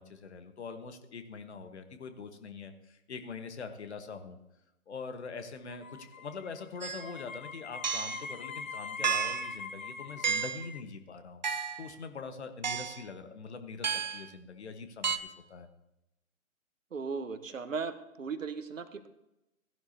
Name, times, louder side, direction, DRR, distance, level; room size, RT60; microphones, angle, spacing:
voice 1, 0.0-4.4 4.9-11.4 11.8-15.7, left 5 dB, 55° left, 8 dB, 1.3 m, -43 dB
sound 1, 5.7-10.8, left 5 dB, 80° left, 1.1 m, -43 dB
sound 2, 6.8-7.0 7.8-8.2 9.0-9.5 10.2-10.7 11.4-11.9 12.6-13.0 13.8-14.3 15.0-15.2, right 6 dB, 35° right, 0.5 m, -32 dB
voice 2, 16.9-19.1, right 5 dB, 70° right, 11 dB, 1.2 m, -37 dB
16.0 x 11.0 x 2.8 m, 0.91 s
figure-of-eight pair, 140°, 41 cm